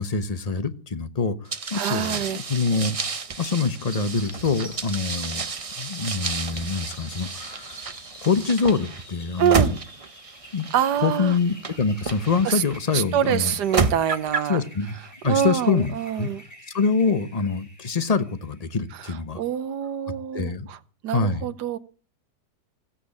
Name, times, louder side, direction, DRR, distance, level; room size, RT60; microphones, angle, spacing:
voice 1, 0.0-3.0 3.4-5.4 5.8-7.8 8.2-9.8 10.5-10.7 11.0-13.5 14.5-15.0 15.2-16.3 16.7-19.4 20.3-20.7 21.1-21.5, left 4 dB, 30° left, 0.8 m, -25 dB
sound 1, 1.5-12.8 13.4-14.6, right 4 dB, 50° right, 0.4 m, -31 dB
voice 2, 1.7-2.4 9.4-9.7 10.7-11.3 12.4-12.6 12.9-14.6 15.2-16.4 19.0-20.8 21.0-21.8, right 9 dB, 75° right, 1.5 m, -25 dB
sound 2, 3.9-19.1, equal, 10° left, 4.7 m, -47 dB
15.5 x 8.5 x 8.3 m
omnidirectional pair, 1.8 m